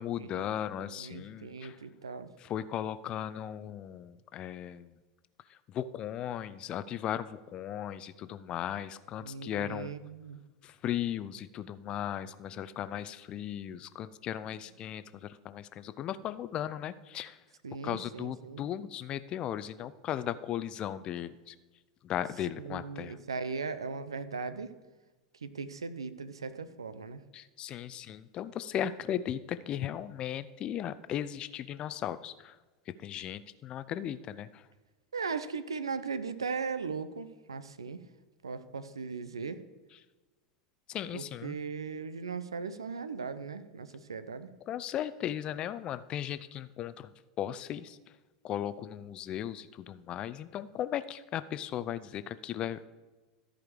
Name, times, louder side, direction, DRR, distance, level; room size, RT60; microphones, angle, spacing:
voice 1, 0.0-1.8 2.4-4.9 5.7-10.0 10.6-17.4 17.8-21.5 22.0-23.2 27.3-32.6 33.0-34.6 40.9-41.6 44.7-47.1 47.4-48.0 48.4-52.9, left 10 dB, 35° left, 15 dB, 0.5 m, -37 dB
voice 2, 0.8-2.3 9.2-10.4 17.6-18.6 22.6-24.7 25.4-27.2 35.1-38.0 38.4-39.6 41.1-44.5, right 5 dB, 80° right, 13 dB, 0.6 m, -38 dB
13.5 x 5.0 x 4.9 m, 1.2 s
figure-of-eight pair, 85°, 3 cm